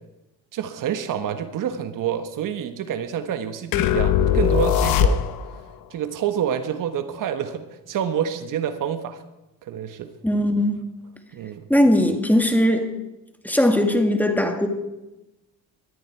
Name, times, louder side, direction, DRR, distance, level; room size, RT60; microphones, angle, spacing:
voice 1, 0.5-5.2 5.9-9.2 9.6-10.1 11.3-11.7, right 9 dB, 65° right, 9 dB, 1.4 m, -27 dB
sound 1, 3.7-5.6, left 9 dB, 85° left, 1.0 m, -20 dB
voice 2, 10.2-10.7 11.7-12.9 13.4-14.7, left 1 dB, 5° left, 5 dB, 2.1 m, -19 dB
21.0 x 13.5 x 4.6 m, 1.0 s
cardioid pair, 100°, 34 cm